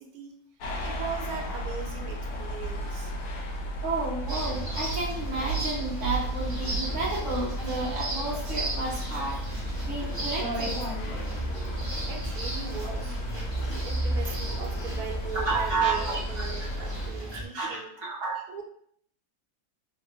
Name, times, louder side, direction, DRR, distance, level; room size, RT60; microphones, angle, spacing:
sound 1, 0.6-17.1, equal, 80° left, 1.1 m, -34 dB
voice 1, 0.8-3.1 12.0-13.2 13.6-17.9 18.5-18.6, right 6 dB, 80° right, 2 dB, 1.1 m, -39 dB
voice 2, 3.8-9.4 9.8-10.9 15.3-16.2 17.3-18.4, right 3 dB, 60° right, -5 dB, 1.1 m, -31 dB
sound 2, 4.3-17.5, right 1 dB, 30° right, 0.4 m, -34 dB
3.2 x 2.2 x 2.9 m, 0.65 s
omnidirectional pair, 1.6 m